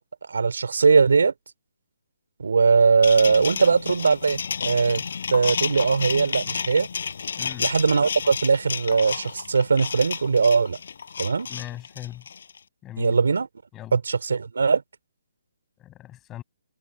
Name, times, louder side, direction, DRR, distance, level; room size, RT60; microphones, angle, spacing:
voice 1, 0.3-1.3 2.4-5.0 5.3-6.9 7.6-10.8 11.2-11.5 13.0-13.5 13.9-14.8, right 5 dB, 75° right, 4.1 m, -20 dB
sound 1, 3.0-12.6, left 6 dB, 65° left, 6.8 m, -31 dB
voice 2, 7.4-7.7 11.5-12.2 12.8-13.2 13.7-14.0 15.8-16.4, left 13 dB, 15° left, 7.9 m, -39 dB
hypercardioid pair, 150°, 0 cm